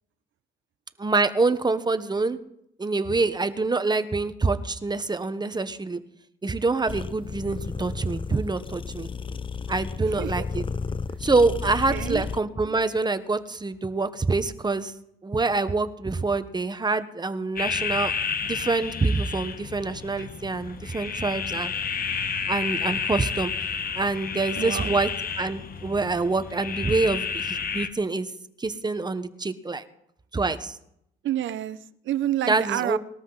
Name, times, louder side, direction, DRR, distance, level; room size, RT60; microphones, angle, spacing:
voice 1, 1.0-2.4 2.8-6.0 6.4-9.1 9.7-10.6 11.2-14.9 15.2-18.1 18.4-21.8 22.5-23.5 24.0-25.1 25.4-28.3 28.6-29.8 30.3-30.8 32.5-33.0, right 3 dB, 20° right, 1.2 m, -26 dB
sound 1, 6.9-12.4, left 5 dB, 25° left, 0.5 m, -33 dB
voice 2, 11.9-12.3 24.6-25.0 31.2-33.0, right 12 dB, 75° right, 0.9 m, -29 dB
sound 2, 17.6-27.9, left 6 dB, 45° left, 1.3 m, -31 dB
20.5 x 13.0 x 4.1 m
cardioid pair, 90°, 20 cm